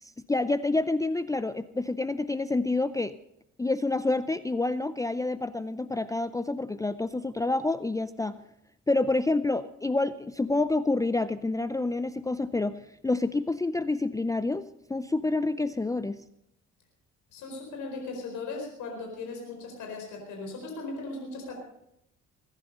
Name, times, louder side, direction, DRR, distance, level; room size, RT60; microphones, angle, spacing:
voice 1, 0.0-3.1 3.6-8.4 8.9-14.6 14.9-16.2, left 2 dB, 10° left, 13 dB, 0.5 m, -28 dB
voice 2, 17.3-21.5, left 3 dB, 80° left, 1 dB, 4.5 m, -38 dB
21.0 x 10.5 x 5.4 m, 0.80 s
cardioid pair, 90°, 30 cm